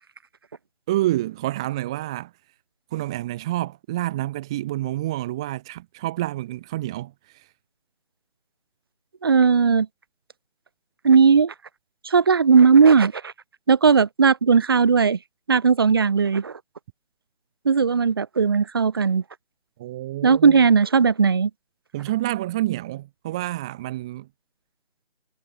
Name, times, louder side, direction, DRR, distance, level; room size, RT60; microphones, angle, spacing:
voice 1, 0.9-2.3 2.9-7.5 19.8-20.6 21.9-24.3, right 15 dB, 5° right, 1.2 m, -28 dB
voice 2, 9.2-9.9 11.0-11.5 12.0-13.3 13.7-15.2 15.5-16.5 17.6-19.2 20.2-21.5, right 5 dB, 20° right, 1.6 m, -17 dB
figure-of-eight pair, 165°, 33 cm